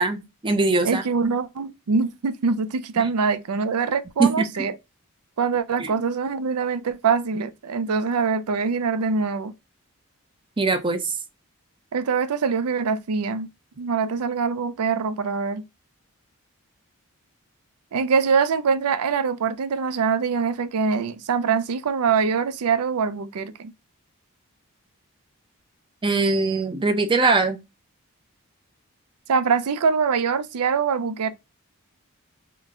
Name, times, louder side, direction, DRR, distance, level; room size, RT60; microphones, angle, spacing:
voice 1, 0.0-1.0 4.2-4.5 5.8-5.9 10.6-11.1 26.0-27.6, right 3 dB, 20° right, 0.5 m, -21 dB
voice 2, 0.8-4.7 5.4-9.5 11.9-13.5 13.8-15.6 17.9-23.7 29.3-31.3, right 5 dB, 85° right, 0.5 m, -23 dB
3.8 x 2.2 x 3.6 m
head